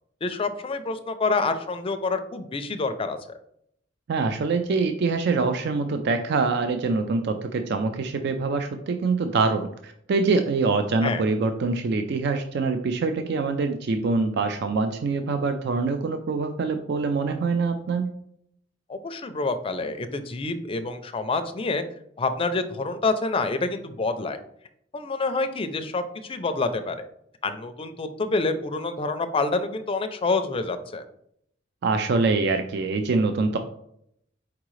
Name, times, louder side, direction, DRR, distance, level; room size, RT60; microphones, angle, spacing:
voice 1, 0.2-3.2 11.0-11.2 18.9-21.8 22.2-24.4 24.9-27.1 27.4-31.0, left 3 dB, 30° left, 8 dB, 0.4 m, -27 dB
voice 2, 4.1-18.1 31.8-33.6, right 4 dB, 60° right, 7 dB, 0.4 m, -24 dB
4.7 x 3.6 x 3.1 m, 0.70 s
head